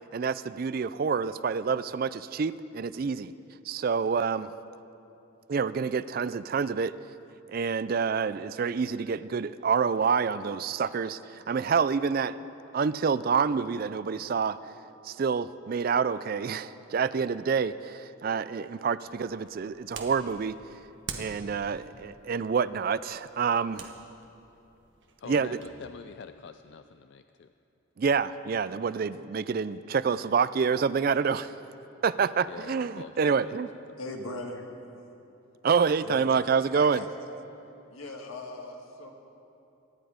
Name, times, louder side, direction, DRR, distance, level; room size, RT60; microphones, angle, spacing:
voice 1, 0.1-3.3 3.7-4.5 5.5-7.0 7.5-12.4 12.7-14.6 15.0-20.6 21.1-23.9 25.3-25.6 28.0-31.5 32.0-33.7 35.6-37.0, right 5 dB, 45° right, 16 dB, 0.3 m, -27 dB
sound 1, 19.1-25.8, right 5 dB, 60° right, 1.3 m, -47 dB
voice 2, 25.2-27.5 32.4-34.0, left 6 dB, 55° left, 10 dB, 0.3 m, -45 dB
voice 3, 34.0-34.6 36.0-36.3 36.7-37.1 37.9-39.1, left 2 dB, 85° left, 2 dB, 1.7 m, -38 dB
23.5 x 10.0 x 5.1 m, 2.8 s
head